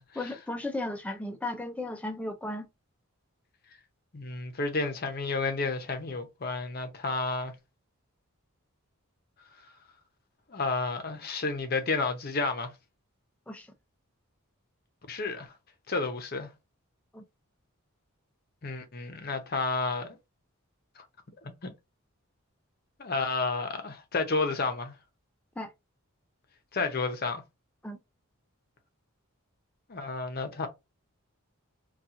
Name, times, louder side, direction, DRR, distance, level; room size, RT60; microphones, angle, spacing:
voice 1, 0.2-2.7 13.5-13.7 17.1-17.2 25.6-25.7 27.8-28.0, left 2 dB, 5° left, 0.4 m, -35 dB
voice 2, 4.1-7.5 10.5-12.7 15.1-15.5 15.9-16.5 18.6-20.2 21.0-21.1 21.4-21.7 23.0-24.9 26.7-27.4 29.9-30.7, left 3 dB, 45° left, 0.7 m, -31 dB
2.9 x 2.3 x 3.5 m
head